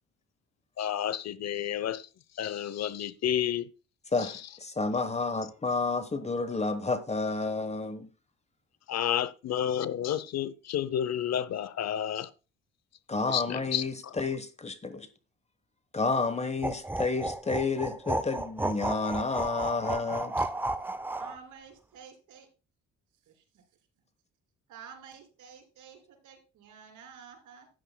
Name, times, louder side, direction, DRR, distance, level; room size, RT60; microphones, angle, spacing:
voice 1, 0.8-2.0 2.4-3.7 8.9-12.3 13.3-13.8, left 10 dB, 60° left, 0.7 m, -30 dB
voice 2, 4.1-8.1 13.1-15.1 15.9-20.4, left 3 dB, 20° left, 1.1 m, -30 dB
sound 1, 16.6-21.4, right 2 dB, 5° right, 0.5 m, -33 dB
voice 3, 20.4-20.8 21.1-22.5 23.2-23.6 24.7-27.7, right 7 dB, 80° right, 3.0 m, -51 dB
13.5 x 9.2 x 2.2 m
cardioid pair, 90°, 30 cm